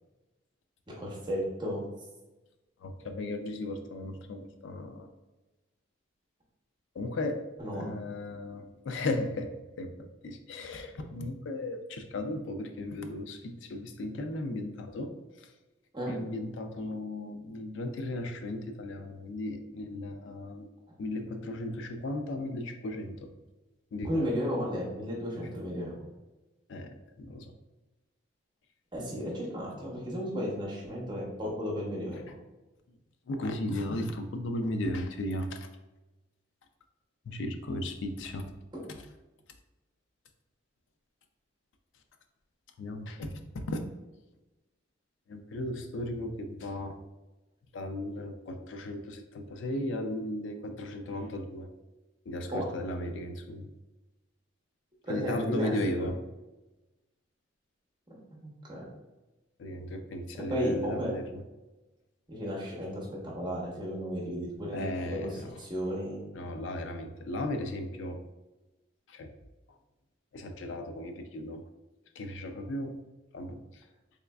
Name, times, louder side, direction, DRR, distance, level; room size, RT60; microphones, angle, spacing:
voice 1, 1.0-1.8 7.6-7.9 15.9-16.2 24.0-25.9 28.9-32.2 38.7-38.9 52.5-52.7 55.1-56.1 58.7-58.8 60.5-61.1 62.3-64.8 65.1-65.3 65.6-66.2, equal, 25° right, -4 dB, 0.8 m, -33 dB
voice 2, 2.8-5.1 6.9-7.4 7.7-9.5 9.8-15.5 16.1-20.7 21.0-23.3 23.9-24.1 25.3-25.5 26.7-27.5 32.9-33.0 33.3-35.7 37.2-38.5 42.8-43.8 45.3-47.0 47.7-51.7 52.3-53.7 55.1-56.2 59.6-61.4 64.7-65.6 66.3-68.2 69.1-69.3 70.3-71.6 72.2-73.0 73.3-73.8, left 1 dB, 75° left, 6 dB, 0.4 m, -36 dB
3.5 x 3.1 x 2.3 m, 1.1 s
head